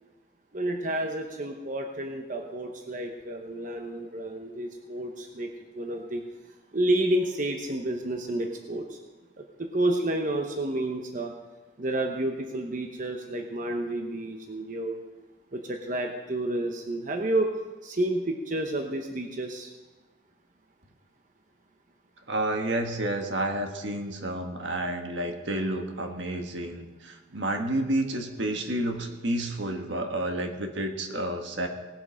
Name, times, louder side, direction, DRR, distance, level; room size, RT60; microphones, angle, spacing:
voice 1, 0.5-5.5 5.7-6.2 6.7-9.0 9.4-11.3 11.8-15.0 15.5-17.5 17.8-19.7, right 1 dB, 45° right, 3 dB, 1.0 m, -30 dB
voice 2, 22.3-31.7, right 1 dB, 70° right, 4 dB, 1.5 m, -30 dB
19.0 x 7.7 x 5.2 m, 1.2 s
head